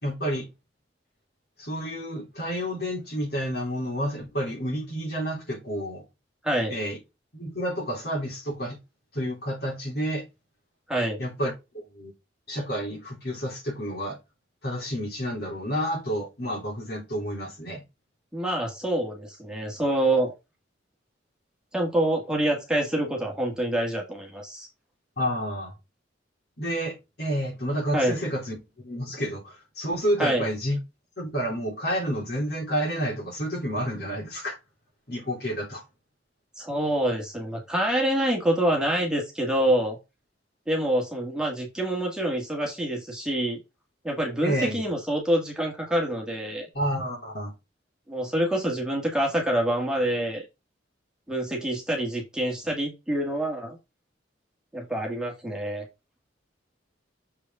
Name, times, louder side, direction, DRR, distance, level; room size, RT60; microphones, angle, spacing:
voice 1, 0.0-0.5 1.6-6.0 6.7-7.0 7.3-8.8 9.1-10.2 11.2-11.5 11.9-12.1 12.5-14.2 14.6-17.8 25.2-25.7 26.6-30.8 31.2-34.6 35.1-35.8 44.4-44.8 46.7-47.5, equal, 55° left, 3.2 m, -30 dB
voice 2, 6.4-6.7 10.9-11.2 18.3-20.3 21.7-24.7 27.9-28.1 30.2-30.5 36.6-40.0 40.7-43.6 44.0-46.7 48.1-50.4 51.3-53.8 54.7-55.8, right 1 dB, 5° right, 1.8 m, -26 dB
6.8 x 4.9 x 3.6 m
head